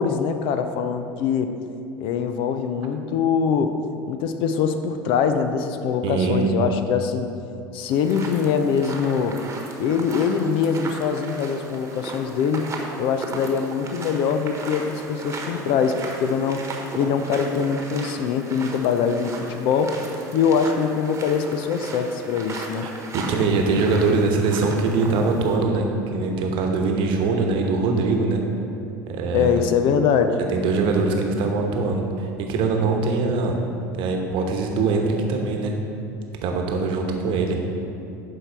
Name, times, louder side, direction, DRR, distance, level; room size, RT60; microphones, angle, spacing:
voice 1, 0.0-1.5 2.0-3.8 4.1-7.3 7.7-9.4 9.8-12.6 13.0-16.7 16.9-20.0 20.3-22.9 29.3-30.4, left 6 dB, 50° left, 8 dB, 0.6 m, -23 dB
voice 2, 6.0-6.5 22.8-28.4 29.1-29.6 30.5-33.6 34.0-35.7 36.4-37.6, right 3 dB, 50° right, 2 dB, 1.1 m, -22 dB
sound 1, 7.9-25.6, right 3 dB, 25° right, 1.2 m, -36 dB
11.0 x 4.6 x 4.6 m, 2.7 s
figure-of-eight pair, 70°, 11 cm